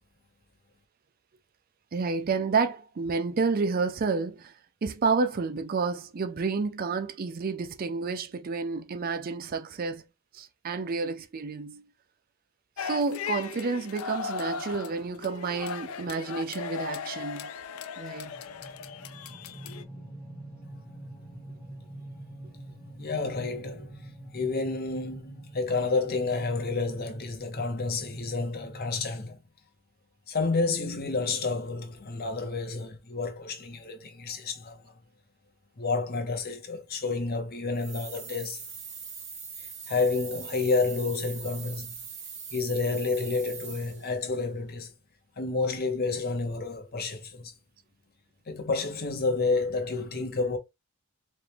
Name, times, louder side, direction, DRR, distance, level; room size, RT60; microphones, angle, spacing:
voice 1, 1.9-4.5 4.8-10.1 10.3-11.9 12.8-17.5 18.0-18.3, right 4 dB, 40° right, 0.4 m, -30 dB
sound 1, 12.8-19.8, left 6 dB, 75° left, 0.4 m, -37 dB
sound 2, 18.2-29.2, right 1 dB, 5° left, 1.1 m, -45 dB
voice 2, 23.0-24.0 24.3-29.4 30.3-34.9 35.8-38.6 39.9-41.9 42.5-44.9 45.4-47.5 48.5-50.6, left 3 dB, 45° left, 0.9 m, -30 dB
sound 3, 37.7-44.2, right 6 dB, 65° right, 1.9 m, -42 dB
4.2 x 2.4 x 3.4 m
head